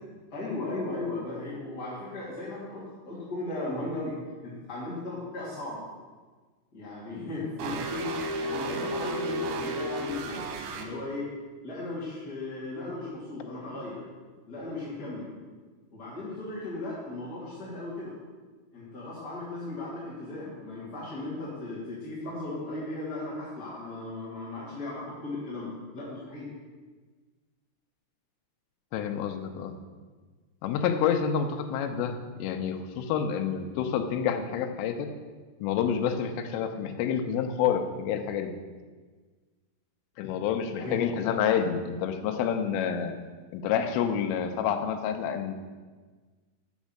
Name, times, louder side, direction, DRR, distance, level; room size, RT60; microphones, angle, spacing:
voice 1, 0.3-4.1 4.4-5.8 6.7-10.4 10.7-11.3 11.6-14.0 14.5-15.3 15.9-18.1 18.7-26.5 40.8-41.0, left 2 dB, 30° left, -9 dB, 1.9 m, -36 dB
sound 1, 7.6-10.8, right 1 dB, 80° right, 3.2 m, -32 dB
voice 2, 28.9-29.8 30.6-35.1 35.6-38.5 40.2-43.1 43.5-45.6, left 8 dB, 90° left, 6 dB, 3.3 m, -28 dB
7.3 x 6.4 x 7.2 m, 1.4 s
omnidirectional pair, 5.7 m